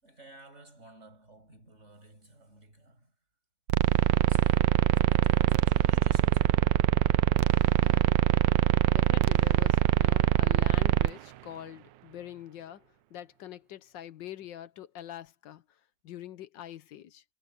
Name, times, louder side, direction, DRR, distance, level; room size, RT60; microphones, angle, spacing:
voice 1, 0.0-3.1 4.2-6.9, right 2 dB, 40° right, 6.9 m, -54 dB
sound 1, 3.7-11.1, right 14 dB, 85° right, 1.3 m, -23 dB
voice 2, 8.9-12.8 13.1-15.6 16.0-17.2, left 11 dB, 85° left, 1.7 m, -44 dB
omnidirectional pair, 1.9 m